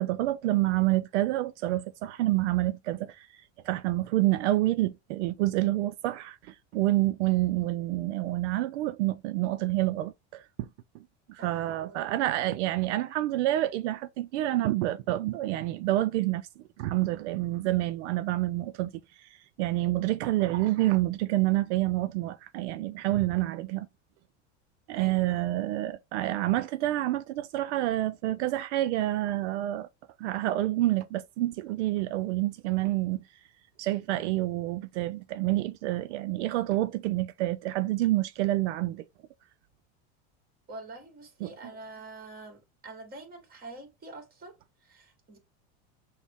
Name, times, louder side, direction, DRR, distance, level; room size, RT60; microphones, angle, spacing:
voice 1, 0.0-3.3 3.6-10.7 10.9-11.0 11.3-16.5 16.8-18.9 19.2-23.9 24.9-29.9 30.2-33.2 33.8-39.0 41.4-41.5, right 16 dB, 85° right, 0.5 m, -28 dB
voice 2, 11.4-12.1 24.9-25.4 40.7-45.4, right 3 dB, 25° right, 1.8 m, -46 dB
6.1 x 2.2 x 3.6 m
supercardioid pair, 135°, 34 cm